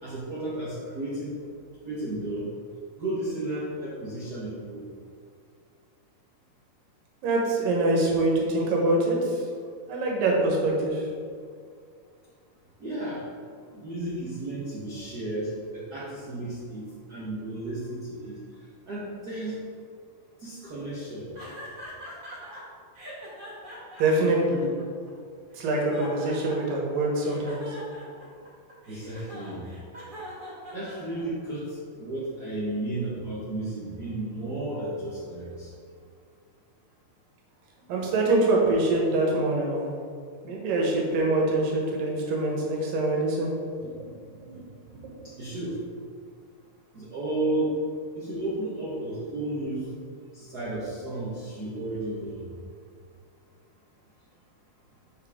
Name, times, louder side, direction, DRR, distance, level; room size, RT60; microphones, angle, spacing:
voice 1, 0.0-1.4 1.9-2.5 3.0-4.8 12.8-13.2 13.7-18.4 18.9-19.6 20.4-21.3 28.9-29.6 30.7-35.7 45.2-45.8 46.9-47.7 48.1-49.9 50.3-52.5, right 1 dB, 65° right, -8 dB, 0.9 m, -33 dB
voice 2, 7.2-9.4 9.9-11.0 24.0-24.6 25.6-27.6 37.9-39.8 40.4-43.5 44.0-44.1 44.4-44.6 44.9-45.0, right 2 dB, 85° right, -2 dB, 3.0 m, -24 dB
sound 1, 21.3-22.6 22.9-25.1 25.5-26.8 27.2-31.5, equal, 30° right, 0.8 m, -42 dB
7.0 x 6.6 x 3.6 m, 2.2 s
omnidirectional pair, 3.8 m